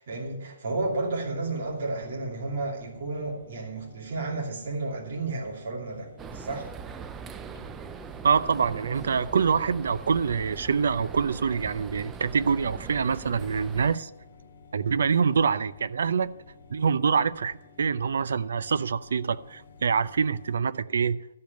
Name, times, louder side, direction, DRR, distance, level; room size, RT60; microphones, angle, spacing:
voice 1, 0.0-6.7, right 3 dB, 45° right, 2.7 m, -32 dB
sound 1, 0.8-20.6, left 4 dB, 65° left, 2.5 m, -52 dB
sound 2, 6.2-14.0, right 6 dB, 10° right, 0.3 m, -41 dB
voice 2, 8.2-14.1 14.7-16.3 16.7-21.2, right 6 dB, 70° right, 0.6 m, -25 dB
13.5 x 5.3 x 9.2 m
hypercardioid pair, 175°, 0 cm